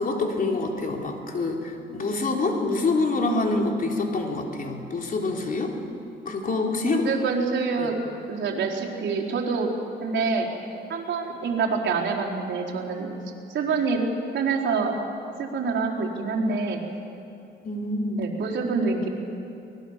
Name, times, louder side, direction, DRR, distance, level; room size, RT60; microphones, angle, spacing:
voice 1, 0.0-5.8 6.3-7.0 7.8-7.9 17.6-18.2, left 3 dB, 45° left, 1 dB, 3.8 m, -26 dB
voice 2, 6.8-8.0 8.3-9.7 10.0-10.5 10.9-13.1 13.5-14.0 14.3-15.0 15.4-16.8 18.2-19.1, right 5 dB, 65° right, -3 dB, 4.3 m, -26 dB
24.5 x 20.0 x 7.5 m, 2.7 s
cardioid pair, 90°, 20 cm